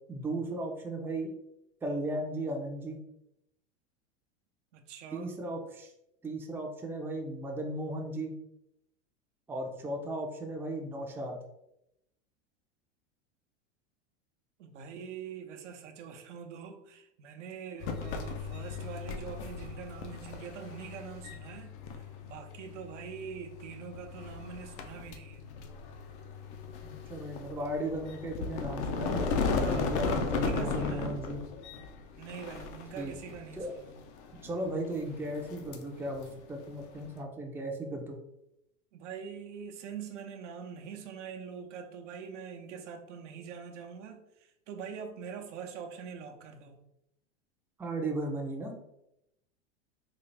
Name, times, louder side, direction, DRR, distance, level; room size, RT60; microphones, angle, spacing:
voice 1, 0.1-1.3 1.8-3.0 5.1-5.9 6.2-8.3 9.5-11.4 26.8-31.4 33.0-33.1 33.6-33.7 34.4-38.2 47.8-48.7, right 1 dB, 5° right, 1 dB, 0.5 m, -36 dB
voice 2, 4.7-5.3 14.6-25.5 29.5-31.2 32.2-34.0 38.9-46.7, right 7 dB, 80° right, 4 dB, 0.7 m, -44 dB
sound 1, 17.8-37.2, left 4 dB, 70° left, 0.7 m, -37 dB
4.0 x 2.4 x 3.2 m, 0.83 s
hypercardioid pair, 115°, 36 cm